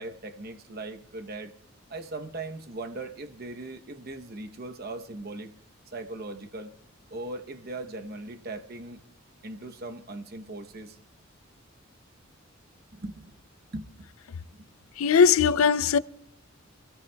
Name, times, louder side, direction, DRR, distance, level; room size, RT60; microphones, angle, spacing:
voice 1, 0.0-1.5 1.9-5.6 5.9-6.7 7.1-9.0 9.4-11.0 12.9-13.3 13.7-14.1 14.5-14.7, right 2 dB, 45° right, 0.9 m, -39 dB
voice 2, 15.0-16.0, left 6 dB, 80° left, 0.4 m, -19 dB
26.5 x 15.5 x 2.3 m
head